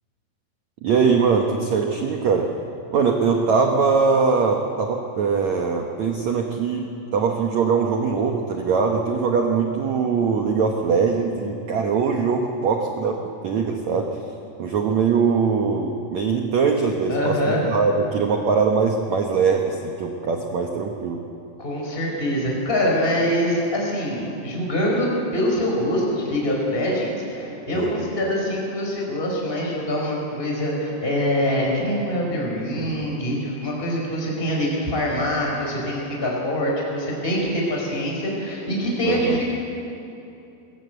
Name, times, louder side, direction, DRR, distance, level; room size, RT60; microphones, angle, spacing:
voice 1, 0.8-2.5 2.9-14.1 14.6-21.2 27.7-28.1 39.0-39.4, right 5 dB, 85° right, 3 dB, 1.6 m, -22 dB
voice 2, 17.1-17.6 21.6-39.4, equal, 10° left, -2 dB, 4.7 m, -24 dB
21.5 x 18.5 x 8.1 m, 2.8 s
omnidirectional pair, 5.1 m